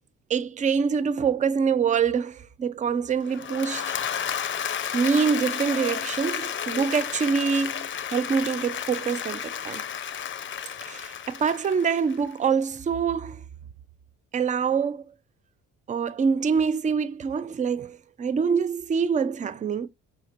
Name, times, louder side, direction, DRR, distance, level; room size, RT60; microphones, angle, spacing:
voice 1, 0.3-3.9 4.9-9.8 10.8-13.4 14.3-15.0 15.9-19.9, right 6 dB, 25° right, 0.4 m, -25 dB
Applause / Crowd, 3.2-12.4, left 8 dB, 40° left, 0.5 m, -32 dB
5.0 x 2.9 x 2.5 m
cardioid pair, 90°, 30 cm